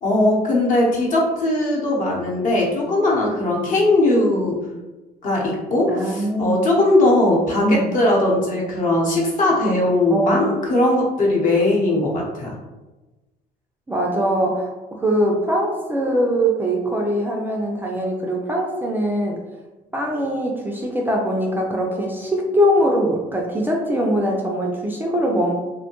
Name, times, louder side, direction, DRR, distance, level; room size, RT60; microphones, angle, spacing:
voice 1, 0.0-4.6 5.2-12.5, left 1 dB, 50° left, -3 dB, 0.9 m, -19 dB
voice 2, 5.9-6.5 7.6-7.9 10.1-10.5 13.9-19.4 19.9-25.5, equal, 10° right, -1 dB, 0.3 m, -22 dB
2.6 x 2.1 x 2.8 m, 1.1 s
cardioid pair, 110°, 17 cm